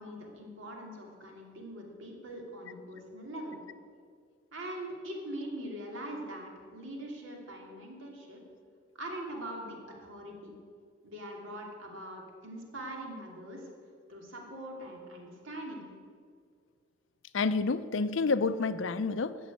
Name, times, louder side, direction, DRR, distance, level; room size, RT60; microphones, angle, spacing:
voice 1, 0.0-3.6 4.5-8.4 8.9-10.5 11.0-13.6 14.1-15.8, right 1 dB, 70° right, 0 dB, 2.8 m, -42 dB
voice 2, 17.3-19.4, left 4 dB, 65° left, 13 dB, 0.5 m, -29 dB
14.5 x 6.3 x 9.0 m, 2.1 s
head